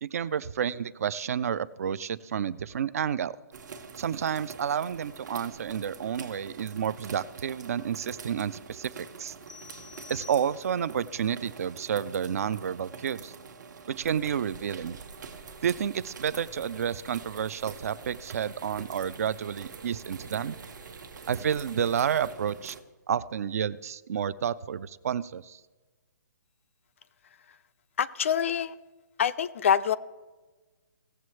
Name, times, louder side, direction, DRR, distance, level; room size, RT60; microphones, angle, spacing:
voice 1, 0.0-3.4 4.0-9.4 10.1-13.3 13.9-15.0 15.6-20.6 21.3-22.8 23.1-25.6, right 8 dB, 50° right, 18 dB, 0.4 m, -30 dB
sound 1, 3.5-22.8, right 5 dB, 70° right, 1.1 m, -46 dB
sound 2, 9.5-11.0, left 6 dB, 80° left, 0.7 m, -48 dB
sound 3, 14.0-22.3, right 4 dB, 90° right, 1.1 m, -50 dB
voice 2, 28.0-28.7 29.2-30.0, left 8 dB, 40° left, 15 dB, 0.3 m, -25 dB
17.0 x 7.6 x 3.2 m, 1.3 s
hypercardioid pair, 165°, 10 cm